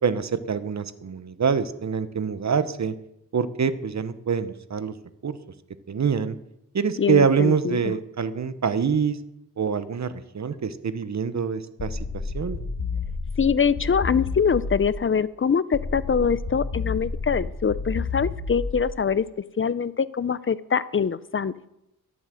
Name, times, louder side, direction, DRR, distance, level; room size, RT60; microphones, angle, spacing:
voice 1, 0.0-2.9 3.3-4.9 5.2-5.4 5.9-6.3 6.7-9.2 9.6-12.0 12.3-12.6, right 6 dB, 55° right, 13 dB, 1.0 m, -25 dB
voice 2, 7.0-7.9 13.4-19.2 19.6-21.5, left 6 dB, 35° left, 17 dB, 0.5 m, -24 dB
sound 1, 11.8-15.0 15.7-19.0, left 4 dB, 65° left, 1.7 m, -31 dB
12.0 x 8.1 x 7.7 m, 0.83 s
cardioid pair, 70°, 34 cm